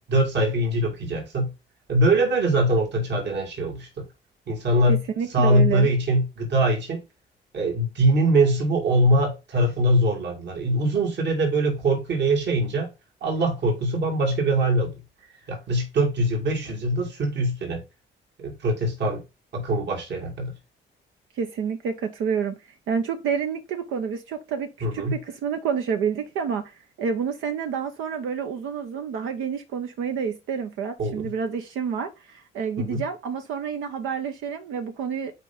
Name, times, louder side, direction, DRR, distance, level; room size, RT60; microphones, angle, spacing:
voice 1, 0.1-1.5 1.9-4.0 4.5-5.0 5.3-7.0 7.5-12.9 13.2-14.9 15.5-17.8 18.4-19.2 19.5-20.5 24.8-25.2 31.0-31.3 32.8-33.0, right 1 dB, 60° right, 2.4 m, -22 dB
voice 2, 4.9-5.9 21.4-35.3, right 6 dB, 90° right, 0.9 m, -29 dB
5.9 x 4.5 x 3.7 m
cardioid pair, 90°, 20 cm